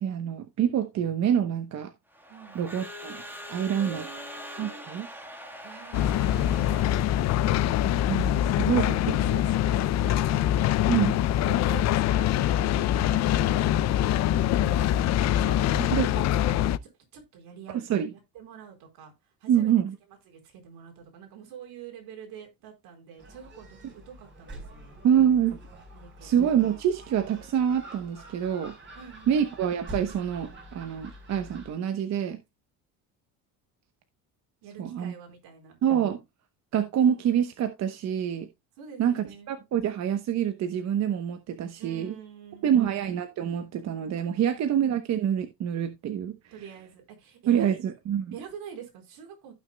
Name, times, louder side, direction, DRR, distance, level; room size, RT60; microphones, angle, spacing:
voice 1, 0.0-1.9 2.5-3.2 3.5-4.0 4.6-5.1 8.1-9.1 10.9-11.2 15.9-16.1 17.7-18.1 19.5-19.9 25.0-25.6 26.2-28.7 29.3-32.4 34.8-35.1 35.8-36.2 36.7-38.5 39.0-42.2 42.6-46.4 47.5-48.3, right 9 dB, 45° right, 0.9 m, -26 dB
Crowd / Alarm, 2.1-7.7, equal, 5° right, 1.5 m, -43 dB
voice 2, 2.3-2.6 3.7-4.9 5.6-7.1 7.8-8.3 8.7-10.6 11.1-14.9 15.3-16.5 16.8-17.8 18.3-19.1 19.4-19.7 20.3-25.0 25.9-26.4 28.9-29.4 34.6-35.8 38.8-39.5 41.8-43.0 44.4-44.6 46.5-47.8 48.3-49.5, right 7 dB, 70° right, 4.4 m, -46 dB
sound 1, 5.9-16.8, left 12 dB, 45° left, 0.5 m, -24 dB
Gull seagull, 23.2-31.7, right 1 dB, 30° right, 4.5 m, -46 dB
15.5 x 6.2 x 2.2 m
cardioid pair, 150°, 38 cm